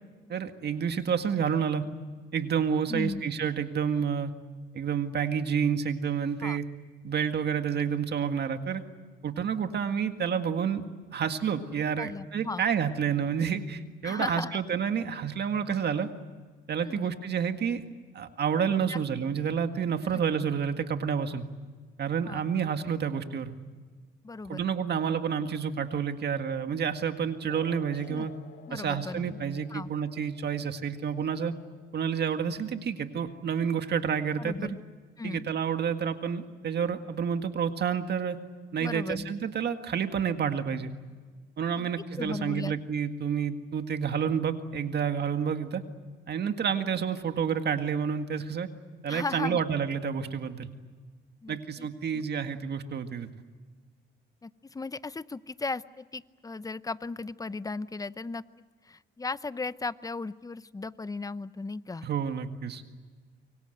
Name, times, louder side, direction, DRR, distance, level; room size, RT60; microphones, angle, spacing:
voice 1, 0.3-1.8 2.3-4.3 4.7-6.6 7.0-8.8 9.2-10.8 11.1-16.1 16.7-17.9 18.1-21.4 22.0-23.5 24.5-28.3 28.7-31.5 31.9-34.8 35.2-38.4 38.7-40.9 41.6-45.8 46.3-48.7 49.0-50.7 51.5-53.3 62.0-62.8, right 7 dB, 55° right, 7 dB, 1.9 m, -29 dB
voice 2, 2.9-3.2 6.4-6.6 12.0-12.6 14.0-14.6 16.8-17.2 18.9-19.0 20.1-20.2 22.3-22.5 24.2-24.6 28.1-28.3 28.7-29.4 29.7-29.9 34.4-34.8 35.2-35.5 38.8-39.3 41.8-42.7 49.1-49.6 51.4-51.9 52.1-52.2 54.4-58.4 58.8-62.1, left 3 dB, 20° left, 16 dB, 0.7 m, -36 dB
sound 1, 27.5-34.5, left 6 dB, 65° left, 2.3 m, -53 dB
26.0 x 23.5 x 8.0 m, 1.4 s
cardioid pair, 90°, 20 cm